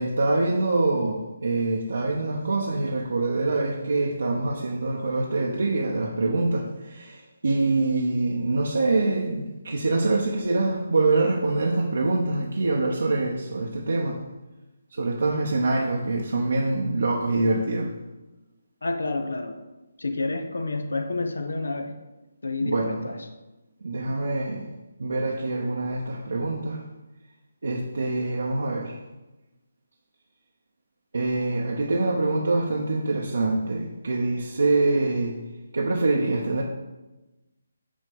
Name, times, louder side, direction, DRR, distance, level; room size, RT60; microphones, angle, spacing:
voice 1, 0.0-14.2 14.9-17.9 22.6-23.1 23.8-24.7 25.0-26.8 27.6-28.9 31.1-35.4 35.7-36.6, right 2 dB, 70° right, -2 dB, 0.9 m, -25 dB
voice 2, 18.8-19.5 20.0-21.9 22.4-23.2, left 2 dB, 75° left, 6 dB, 0.9 m, -29 dB
8.5 x 3.2 x 5.4 m, 1.1 s
figure-of-eight pair, 150°, 0 cm